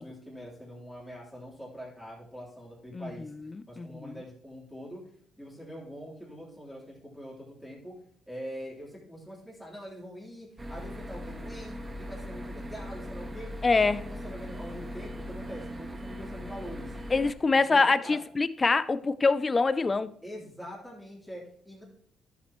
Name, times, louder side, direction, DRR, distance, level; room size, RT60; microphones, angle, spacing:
voice 1, 0.0-3.3 3.7-5.0 5.4-7.9 8.3-13.5 13.8-17.0 17.7-18.2 20.2-21.8, equal, 5° left, 3.6 m, -43 dB
voice 2, 2.9-3.3 3.8-4.2 13.6-14.0 17.1-20.1, left 4 dB, 30° left, 0.4 m, -25 dB
sound 1, 10.6-17.3, equal, 25° right, 1.4 m, -39 dB
11.5 x 7.4 x 3.1 m
cardioid pair, 90°, 0 cm